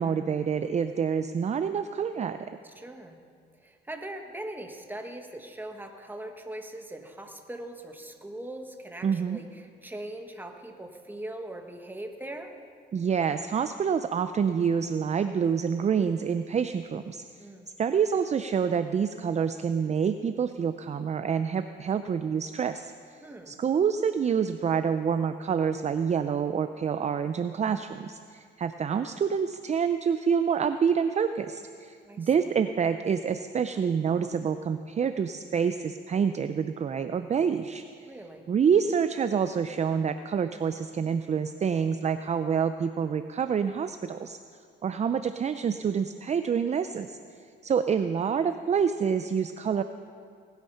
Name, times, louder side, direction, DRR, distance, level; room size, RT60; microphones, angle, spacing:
voice 1, 0.0-2.4 9.0-9.4 12.9-17.2 17.8-22.9 23.5-37.8 38.5-44.4 44.8-47.2 47.6-49.8, right 7 dB, 35° right, 10 dB, 0.5 m, -27 dB
voice 2, 2.6-3.2 3.6-12.5 17.4-17.6 23.2-23.6 32.0-32.5 38.0-38.5, right 1 dB, 10° right, 4 dB, 1.5 m, -41 dB
19.0 x 9.1 x 5.7 m, 2.3 s
cardioid pair, 90°, 20 cm